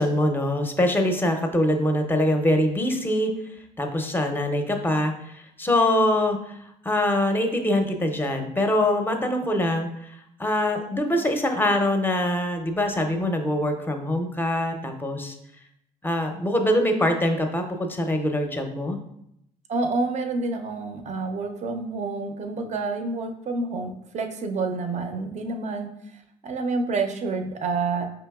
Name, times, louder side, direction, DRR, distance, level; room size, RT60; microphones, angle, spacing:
voice 1, 0.0-3.3 3.8-6.6 6.8-9.9 10.4-15.4 16.0-19.0, left 1 dB, 10° left, 5 dB, 0.6 m, -23 dB
voice 2, 19.7-25.9 26.4-28.1, right 3 dB, 40° right, 6 dB, 0.5 m, -28 dB
5.1 x 2.9 x 2.3 m, 0.77 s
hypercardioid pair, 60°, 19 cm